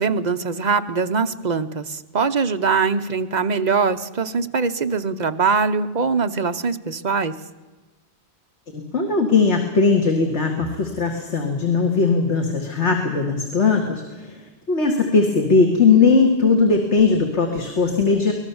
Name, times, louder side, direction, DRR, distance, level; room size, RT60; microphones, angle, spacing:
voice 1, 0.0-7.4, right 5 dB, 45° right, 8 dB, 0.9 m, -22 dB
voice 2, 8.7-14.3 14.7-18.3, left 4 dB, 90° left, 2 dB, 2.3 m, -19 dB
24.5 x 19.0 x 7.1 m, 1.2 s
omnidirectional pair, 1.2 m